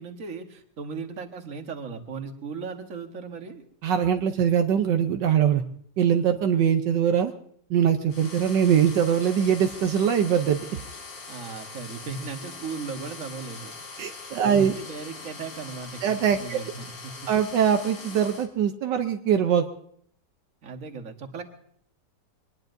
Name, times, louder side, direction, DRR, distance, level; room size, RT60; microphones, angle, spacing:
voice 1, 0.0-3.6 11.3-13.7 14.4-17.1 20.6-21.4, right 5 dB, 50° right, 5 dB, 1.7 m, -37 dB
voice 2, 3.8-5.6 6.0-7.3 7.7-10.8 14.0-14.7 16.0-16.6 17.3-19.7, right 8 dB, 75° right, 6 dB, 1.4 m, -22 dB
sound 1, 8.1-18.5, left 4 dB, 85° left, 2.7 m, -42 dB
23.5 x 20.0 x 2.6 m, 0.64 s
omnidirectional pair, 1.9 m